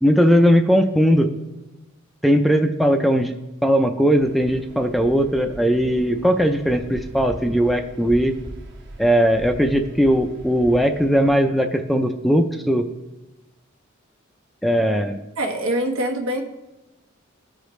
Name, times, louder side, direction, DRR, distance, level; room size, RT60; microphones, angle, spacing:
voice 1, 0.0-1.3 2.2-3.3 3.6-8.3 9.0-12.9 14.6-15.2, equal, ahead, 6 dB, 0.3 m, -18 dB
Waves surf, 4.2-11.5, equal, 55° right, 1.3 m, -40 dB
voice 2, 15.4-16.4, right 1 dB, 90° right, 2 dB, 1.2 m, -24 dB
15.0 x 5.0 x 3.1 m, 1.0 s
head